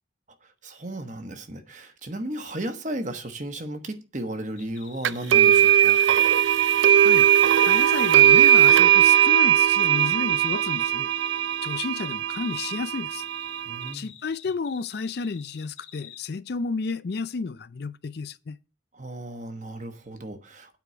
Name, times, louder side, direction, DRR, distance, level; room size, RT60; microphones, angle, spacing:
voice 1, 0.4-6.0 13.7-14.1 18.9-20.8, right 1 dB, 40° right, 1.1 m, -35 dB
sound 1, 4.6-9.4 9.8-12.8 13.2-16.2, left 10 dB, 80° left, 1.3 m, -47 dB
sound 2, 5.0-13.9, right 10 dB, 75° right, 0.3 m, -19 dB
voice 2, 7.7-11.1 11.6-13.2 13.9-18.6, left 4 dB, 55° left, 0.4 m, -32 dB
9.0 x 4.6 x 6.7 m
head